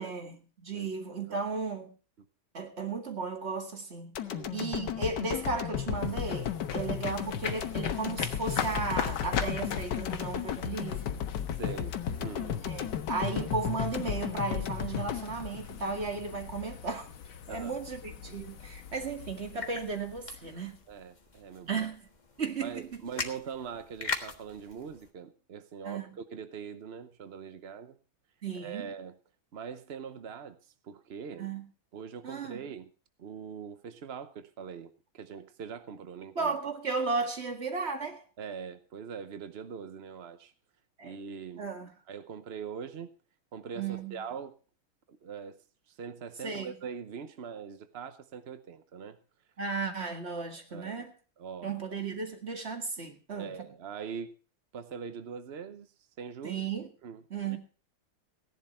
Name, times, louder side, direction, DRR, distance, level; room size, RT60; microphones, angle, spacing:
voice 1, 0.0-1.9 2.5-4.2 4.5-11.1 12.6-17.1 17.5-20.8 21.7-22.1 22.4-23.0 25.8-26.2 28.4-28.9 31.4-31.7 32.2-32.6 36.4-38.2 41.0-41.2 41.6-41.9 43.8-44.2 46.4-46.8 49.6-51.1 51.6-53.7 56.4-56.9 57.3-57.6, right 4 dB, 30° right, 2.1 m, -35 dB
sound 1, 4.2-16.4 16.8-16.9, left 9 dB, 60° left, 1.5 m, -34 dB
sound 2, 5.8-21.0, left 8 dB, 80° left, 1.9 m, -40 dB
voice 2, 11.6-12.6 17.5-17.8 18.3-18.4 20.9-21.8 22.6-28.0 28.5-29.1 29.5-31.5 31.9-32.9 33.2-36.6 38.4-40.5 41.0-41.7 42.1-43.1 43.5-44.5 45.1-49.2 50.7-51.1 51.4-51.7 53.4-54.3 54.7-55.9 56.2-56.6 57.0-57.2 57.4-57.6, right 6 dB, 65° right, 0.6 m, -42 dB
sound 3, 19.6-25.1, left 4 dB, 25° left, 1.3 m, -41 dB
17.0 x 11.0 x 4.3 m
omnidirectional pair, 2.2 m